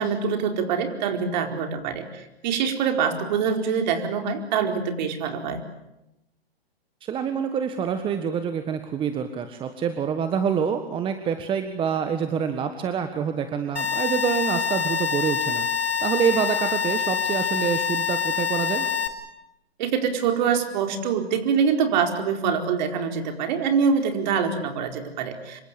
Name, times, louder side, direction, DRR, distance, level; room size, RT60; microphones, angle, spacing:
voice 1, 0.0-5.6 19.8-25.6, right 6 dB, 45° right, 5 dB, 4.5 m, -25 dB
voice 2, 7.0-18.9, right 7 dB, 15° right, 8 dB, 1.5 m, -26 dB
sound 1, 13.8-19.1, left 7 dB, 85° left, 5.5 m, -25 dB
26.5 x 23.5 x 8.4 m, 0.90 s
hypercardioid pair, 130°, 31 cm